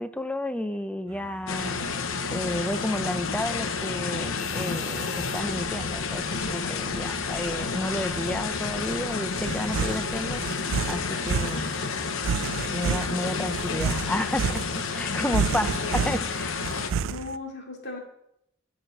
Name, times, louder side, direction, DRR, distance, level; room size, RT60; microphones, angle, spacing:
voice 1, 0.0-1.8 2.3-10.4 10.9-11.7 12.7-16.6, left 1 dB, 5° left, 11 dB, 0.5 m, -31 dB
sound 1, 1.1-17.4, right 6 dB, 90° right, 0.4 m, -33 dB
sound 2, 1.5-16.9, left 5 dB, 85° left, 0.8 m, -30 dB
sound 3, 4.4-10.5, left 2 dB, 30° left, 1.4 m, -45 dB
voice 2, 17.0-18.0, left 2 dB, 55° left, 0 dB, 2.5 m, -38 dB
9.2 x 6.0 x 8.1 m, 0.77 s
head